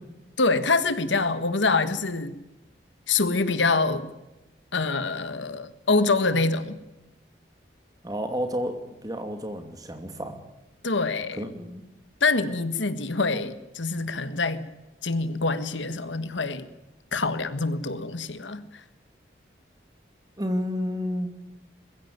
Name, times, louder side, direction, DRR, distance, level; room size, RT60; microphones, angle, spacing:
voice 1, 0.4-2.3 3.1-4.1 4.7-6.8 10.8-11.4 12.2-14.6 15.0-16.7 17.1-18.8, left 3 dB, 90° left, 12 dB, 1.6 m, -25 dB
voice 2, 8.0-10.4 11.4-11.8 20.4-21.3, equal, 20° right, 6 dB, 2.6 m, -31 dB
22.0 x 15.5 x 9.3 m, 1.0 s
head